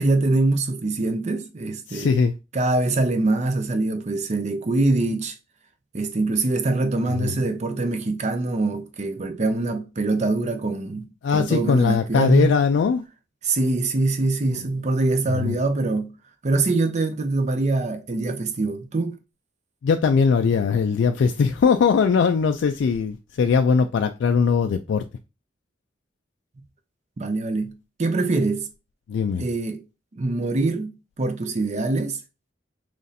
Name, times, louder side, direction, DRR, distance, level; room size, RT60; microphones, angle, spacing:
voice 1, 0.0-2.2 2.5-5.3 5.9-11.1 11.3-12.6 13.4-16.1 16.4-19.2 27.2-28.7 29.4-29.8 30.1-32.2, right 2 dB, 35° right, 0.6 m, -24 dB
voice 2, 1.9-2.3 7.1-7.3 11.2-13.0 15.3-15.6 19.8-25.0 29.1-29.4, left 5 dB, 65° left, 0.3 m, -20 dB
3.2 x 2.6 x 4.0 m
head